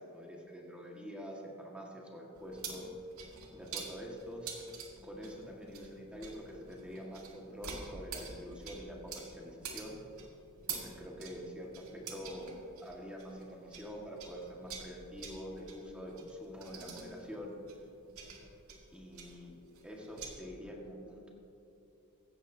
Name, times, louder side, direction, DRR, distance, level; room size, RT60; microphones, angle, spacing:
voice 1, 0.0-2.9 3.5-4.6 5.0-10.0 10.7-17.5 18.9-19.5 19.8-21.3, equal, 5° right, -2 dB, 1.7 m, -46 dB
sound 1, 2.3-13.9 14.2-20.3, right 5 dB, 85° right, 2.1 m, -47 dB
16.5 x 13.0 x 2.8 m, 3.0 s
head